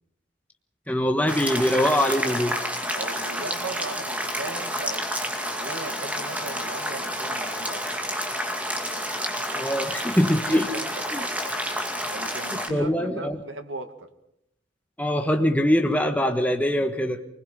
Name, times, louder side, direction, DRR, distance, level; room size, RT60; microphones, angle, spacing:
voice 1, 0.9-2.6 9.5-10.7 11.1-11.2 12.5-13.4 15.0-17.2, equal, 10° left, 4 dB, 1.3 m, -23 dB
sound 1, 1.3-12.7, equal, 10° right, 2.3 m, -30 dB
voice 2, 2.9-5.1 5.6-7.9 10.5-10.9 11.2-11.3 12.1-14.1, right 2 dB, 80° right, 7 dB, 2.1 m, -37 dB
25.0 x 20.0 x 5.7 m, 0.78 s
head